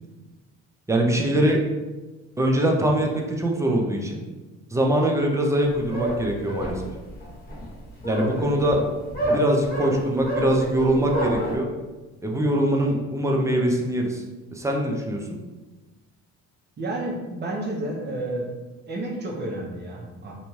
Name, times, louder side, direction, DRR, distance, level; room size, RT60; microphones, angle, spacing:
voice 1, 0.9-1.6 2.4-4.2 4.7-6.8 8.0-8.8 9.3-11.7 12.2-14.2 14.5-15.2, right 1 dB, 10° right, 0 dB, 0.4 m, -22 dB
sound 1, 5.6-11.6, equal, 30° left, 1.0 m, -28 dB
voice 2, 16.8-18.5 18.9-20.3, right 1 dB, 35° right, -2 dB, 0.8 m, -31 dB
2.7 x 2.2 x 3.0 m, 1.2 s
cardioid pair, 90°, 30 cm